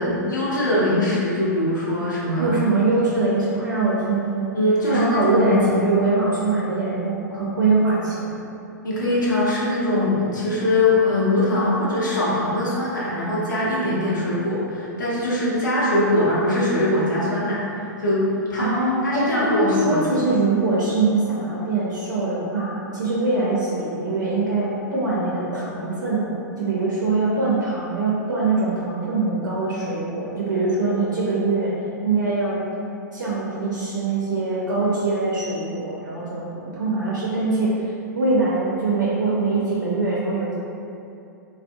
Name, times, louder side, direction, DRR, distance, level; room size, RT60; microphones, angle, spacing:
voice 1, 0.0-2.5 4.5-5.7 8.8-18.7 19.0-20.1, left 1 dB, 75° left, -7 dB, 0.7 m, -22 dB
voice 2, 2.4-4.5 4.8-8.3 18.6-26.3 26.6-31.7 32.0-32.6 33.1-37.9 38.1-40.5, right 3 dB, 80° right, -7 dB, 0.5 m, -23 dB
2.6 x 2.0 x 2.6 m, 2.6 s
figure-of-eight pair, 105°, 10 cm